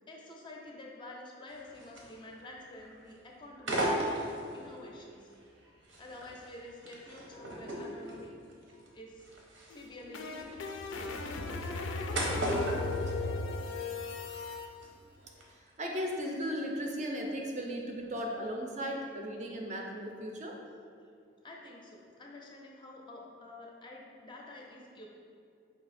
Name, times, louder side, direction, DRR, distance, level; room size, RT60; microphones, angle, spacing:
voice 1, 0.1-5.3 6.0-8.4 8.9-9.3 9.7-10.7 21.4-25.1, left 1 dB, 25° left, -1 dB, 0.5 m, -49 dB
sound 1, 1.5-2.5 2.8-3.1 3.6-4.7 5.3-14.0 14.2-14.9 15.2-15.4, right 1 dB, 85° right, 0.8 m, -37 dB
sound 2, 9.7-14.7, left 3 dB, 85° left, 0.4 m, -36 dB
voice 2, 15.2-20.6, equal, 40° right, 0 dB, 0.4 m, -37 dB
4.8 x 2.7 x 4.1 m, 2.4 s
head